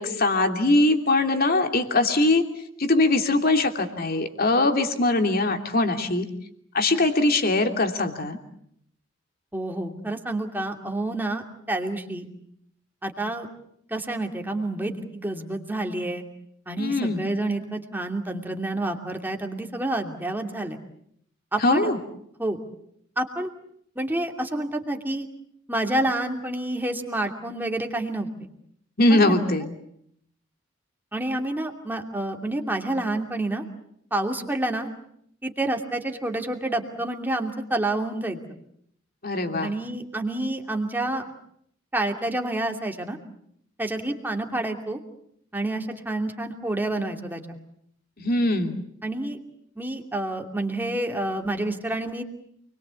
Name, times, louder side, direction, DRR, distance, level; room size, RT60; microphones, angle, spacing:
voice 1, 0.0-2.4 2.8-6.3 6.7-8.4 16.8-17.2 21.6-22.0 29.0-29.8 39.2-39.7 48.2-48.8, left 2 dB, 50° left, 5 dB, 2.9 m, -22 dB
voice 2, 9.5-12.3 13.0-13.5 13.9-16.2 16.7-20.8 21.5-21.9 22.4-22.6 23.2-23.5 24.0-25.3 25.7-28.5 29.1-29.4 31.1-33.6 34.1-34.9 35.4-38.4 39.6-41.2 41.9-43.2 43.8-45.0 45.5-47.6 49.0-49.4 49.8-52.2, right 1 dB, 10° right, 3 dB, 2.7 m, -28 dB
29.0 x 22.0 x 8.4 m, 0.70 s
head